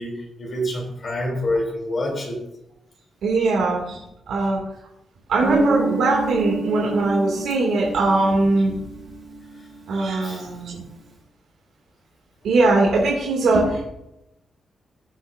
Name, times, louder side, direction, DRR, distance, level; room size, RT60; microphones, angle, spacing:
voice 1, 0.0-2.4 10.2-10.5, left 1 dB, 30° left, -2 dB, 3.5 m, -27 dB
voice 2, 3.2-4.0 4.3-4.6 5.3-8.7 9.9-10.8 12.4-13.8, right 2 dB, 80° right, -2 dB, 2.8 m, -20 dB
Guitar, 5.4-10.0, right 2 dB, 35° right, 2.9 m, -27 dB
16.0 x 8.7 x 2.8 m, 0.85 s
wide cardioid pair, 180°, 0 cm